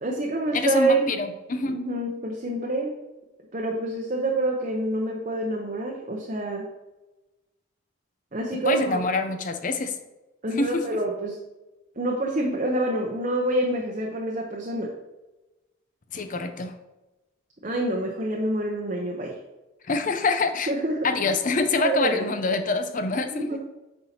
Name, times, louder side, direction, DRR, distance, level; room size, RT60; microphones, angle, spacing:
voice 1, 0.0-1.1 1.6-3.0 3.5-6.7 8.3-9.0 10.4-11.4 12.0-14.9 17.6-19.3 20.7-21.1 21.8-22.3 23.3-23.6, right 1 dB, 35° right, -1 dB, 0.8 m, -27 dB
voice 2, 0.5-1.8 8.6-9.9 10.6-10.8 16.1-16.8 19.9-20.7 21.0-23.6, left 3 dB, 40° left, 8 dB, 0.6 m, -26 dB
9.0 x 5.6 x 2.8 m, 1.0 s
head